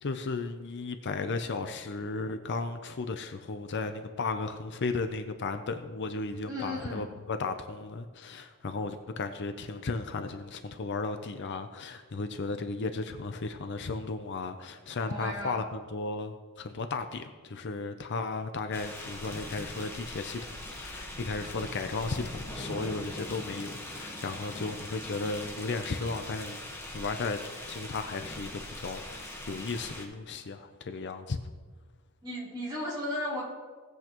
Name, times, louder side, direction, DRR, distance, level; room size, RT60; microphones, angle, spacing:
voice 1, 0.0-26.6 26.9-27.4 27.7-31.4, left 3 dB, 55° left, 8 dB, 0.6 m, -35 dB
voice 2, 6.5-7.1 15.1-15.6 32.2-33.4, left 1 dB, 20° right, -8 dB, 3.4 m, -35 dB
sound 1, 18.7-30.0, left 1 dB, 10° left, 1.2 m, -41 dB
17.5 x 8.0 x 3.0 m, 1.4 s
head